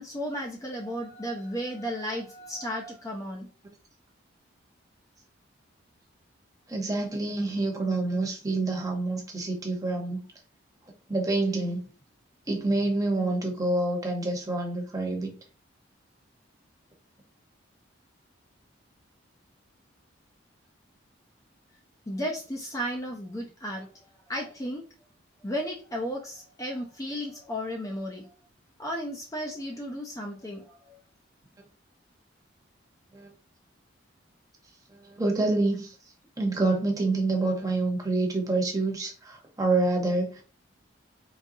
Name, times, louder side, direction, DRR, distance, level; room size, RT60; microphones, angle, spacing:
voice 1, 0.0-3.5 22.1-23.9 24.3-24.8 25.4-28.3 28.8-31.0, equal, 15° left, 1 dB, 0.4 m, -34 dB
voice 2, 6.7-10.2 11.1-11.8 12.5-15.3 33.1-33.3 34.9-35.9 36.4-40.4, right 2 dB, 15° right, 1 dB, 0.9 m, -27 dB
4.0 x 3.4 x 2.6 m, 0.37 s
head